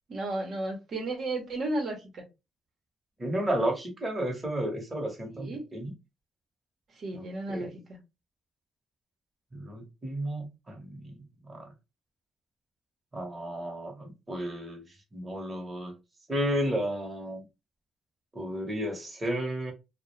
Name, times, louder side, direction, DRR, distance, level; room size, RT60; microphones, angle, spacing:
voice 1, 0.1-2.2 5.3-5.7 6.9-8.0, right 2 dB, 60° right, 0.8 m, -34 dB
voice 2, 3.2-5.9 7.1-7.7 9.5-11.1 11.5-11.7 13.1-14.8 15.1-15.9 16.3-17.5 18.3-19.7, right 1 dB, 20° right, 0.9 m, -32 dB
2.3 x 2.1 x 3.0 m
cardioid pair, 90°, 0 cm